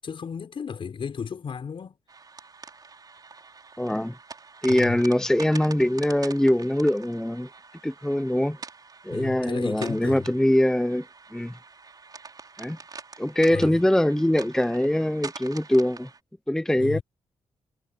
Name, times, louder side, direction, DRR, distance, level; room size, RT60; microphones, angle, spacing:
voice 1, 0.0-2.0 4.7-5.0 9.1-10.3 13.5-13.7 16.7-17.0, left 6 dB, 55° left, 6.7 m, -34 dB
sound 1, 2.1-16.2, right 4 dB, 40° right, 4.7 m, -44 dB
voice 2, 3.8-4.1 4.6-7.5 7.8-8.6 9.0-11.0 11.3-11.6 12.6-12.8 13.2-16.1 16.5-17.0, left 1 dB, 5° left, 0.8 m, -23 dB
cardioid pair, 115°, 11 cm